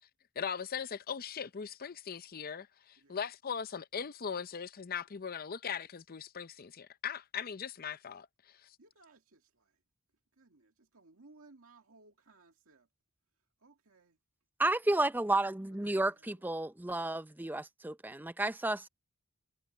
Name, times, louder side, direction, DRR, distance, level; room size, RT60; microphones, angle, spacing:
voice 1, 0.4-8.3 8.6-8.8, left 7 dB, 45° left, 0.6 m, -39 dB
voice 2, 8.8-9.8 10.4-12.9 13.6-14.2 14.8-15.0 15.8-16.4, right 3 dB, 85° right, 2.1 m, -62 dB
voice 3, 14.6-18.9, right 2 dB, 10° right, 0.6 m, -32 dB
head